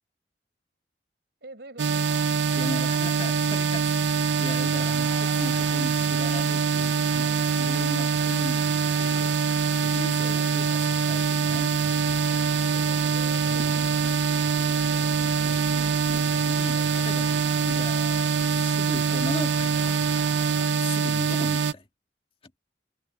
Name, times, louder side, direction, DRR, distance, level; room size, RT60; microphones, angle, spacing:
voice 1, 1.4-2.4 10.2-10.9 12.7-15.9, right 2 dB, 65° right, 5.4 m, -47 dB
sound 1, 1.8-21.7, right 5 dB, 80° right, 0.6 m, -24 dB
sound 2, 2.0-20.7, left 1 dB, 10° left, 5.7 m, -46 dB
voice 2, 2.5-10.7 11.0-11.8 16.2-20.0 20.7-21.9 22.4-22.5, left 2 dB, 30° left, 1.9 m, -38 dB
sound 3, 5.5-20.7, right 2 dB, 35° right, 1.3 m, -46 dB
head